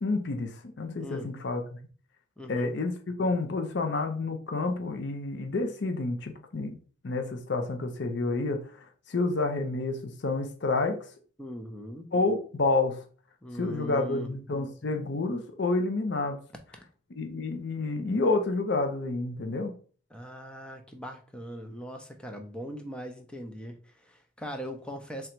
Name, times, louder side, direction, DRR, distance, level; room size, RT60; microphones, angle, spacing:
voice 1, 0.0-1.6 2.5-2.9 3.2-6.8 7.0-8.6 9.1-11.0 12.1-13.0 13.6-16.4 17.1-19.7, left 3 dB, 55° left, 5 dB, 0.5 m, -29 dB
voice 2, 1.0-1.3 2.4-2.7 11.4-12.1 13.4-14.3 20.1-25.3, equal, 5° left, 3 dB, 0.5 m, -40 dB
3.8 x 2.2 x 4.4 m, 0.41 s
head